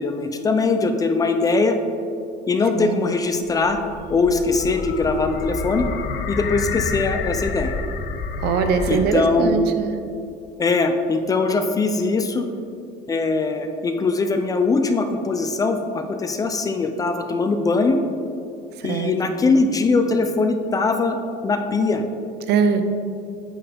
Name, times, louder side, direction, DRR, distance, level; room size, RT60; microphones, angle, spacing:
voice 1, 0.0-1.8 2.5-3.8 4.1-5.8 6.3-7.7 8.9-9.6 10.6-12.4 13.1-18.0 18.8-21.2 21.4-22.0, left 3 dB, 20° left, 6 dB, 0.4 m, -21 dB
sound 1, 3.3-9.4, left 4 dB, 65° left, 0.6 m, -29 dB
voice 2, 8.4-9.9 18.8-19.1 22.5-22.8, right 6 dB, 65° right, 8 dB, 0.7 m, -21 dB
8.7 x 6.9 x 3.5 m, 2.6 s
cardioid pair, 170°, 18 cm